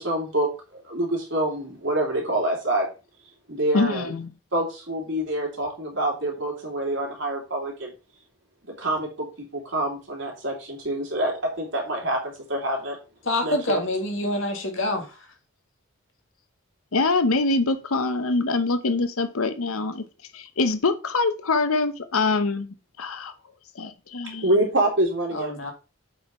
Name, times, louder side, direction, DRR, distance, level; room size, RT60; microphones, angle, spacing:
voice 1, 0.0-2.9 3.5-4.1 4.5-7.9 8.8-13.0 13.4-13.8 24.4-25.5, right 1 dB, 55° right, 2.9 m, -26 dB
voice 2, 3.7-4.3 16.9-20.0 20.3-23.3 23.7-24.5, left 3 dB, 80° left, 0.9 m, -24 dB
voice 3, 13.3-15.1 25.3-25.7, left 1 dB, 60° left, 1.8 m, -26 dB
7.4 x 4.4 x 5.3 m
head